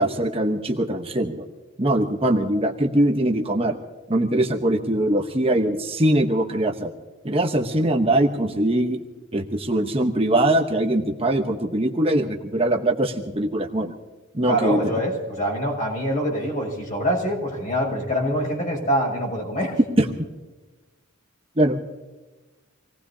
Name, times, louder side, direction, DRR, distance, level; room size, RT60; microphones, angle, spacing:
voice 1, 0.0-1.4 1.8-3.8 4.1-6.9 7.2-9.0 9.3-13.9 14.3-14.8 20.0-20.1 21.6-21.8, right 1 dB, 30° right, 3 dB, 1.1 m, -22 dB
voice 2, 14.5-19.8, equal, 40° left, 0 dB, 6.1 m, -25 dB
26.5 x 18.5 x 2.8 m, 1.2 s
head